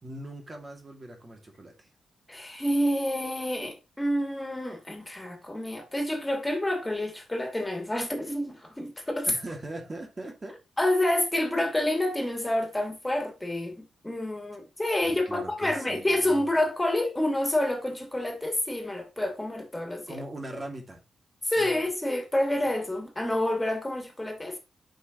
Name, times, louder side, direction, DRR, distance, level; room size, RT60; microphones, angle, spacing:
voice 1, 0.0-1.9 9.3-10.6 15.0-16.5 20.1-21.0 21.6-21.8, right 1 dB, 40° right, 2.5 m, -40 dB
voice 2, 2.3-9.3 10.8-20.2 21.4-24.6, left 1 dB, 15° left, 2.8 m, -28 dB
8.0 x 6.1 x 3.1 m
supercardioid pair, 45°, 0 cm